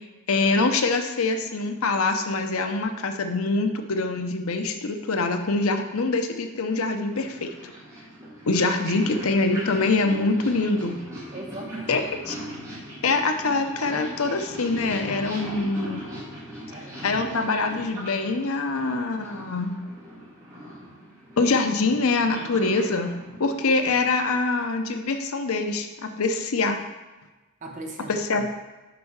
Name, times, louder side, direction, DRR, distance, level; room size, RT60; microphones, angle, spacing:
voice 1, 0.3-7.5 8.5-11.0 11.9-12.3 13.0-16.1 17.0-19.8 21.4-26.8 28.1-28.4, left 3 dB, 80° left, 6 dB, 0.7 m, -24 dB
Purr, 6.7-24.3, equal, 15° right, 2.6 m, -40 dB
voice 2, 11.3-12.0 16.7-17.2 27.6-28.5, right 2 dB, 35° right, 1 dB, 1.0 m, -38 dB
7.2 x 5.3 x 4.7 m, 1.2 s
head